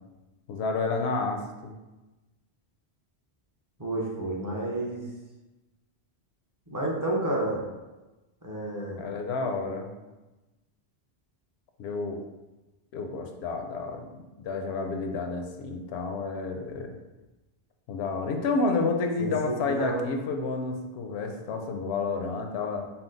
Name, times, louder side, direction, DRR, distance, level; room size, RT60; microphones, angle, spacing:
voice 1, 0.5-1.7 9.0-9.9 11.8-12.2 12.9-14.0 14.4-17.0 17.9-22.9, left 3 dB, 80° left, 4 dB, 0.8 m, -30 dB
voice 2, 3.8-5.1 6.7-7.6 8.4-9.1 19.2-20.1, right 2 dB, 20° right, -3 dB, 0.6 m, -30 dB
5.6 x 2.0 x 3.8 m, 1.1 s
omnidirectional pair, 1.1 m